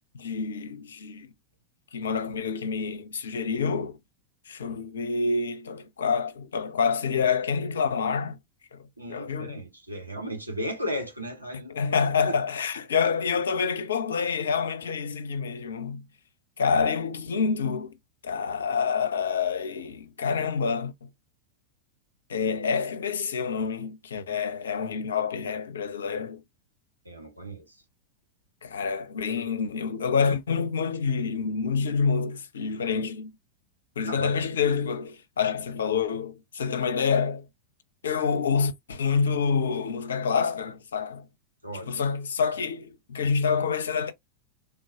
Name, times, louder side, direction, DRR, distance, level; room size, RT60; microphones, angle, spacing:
voice 1, 0.2-1.3 1.9-3.9 4.5-8.4 8.7-8.8 9.1-9.6 11.7-16.0 16.6-18.0 18.2-20.9 22.3-26.4 28.6-33.3 34.0-37.5 38.0-41.3 41.9-44.1, left 5 dB, 65° left, 0.6 m, -27 dB
voice 2, 9.0-12.3 27.0-27.7 34.1-34.3 41.6-42.0, equal, 90° right, 1.1 m, -35 dB
3.4 x 2.2 x 2.9 m
figure-of-eight pair, 90°, 0 cm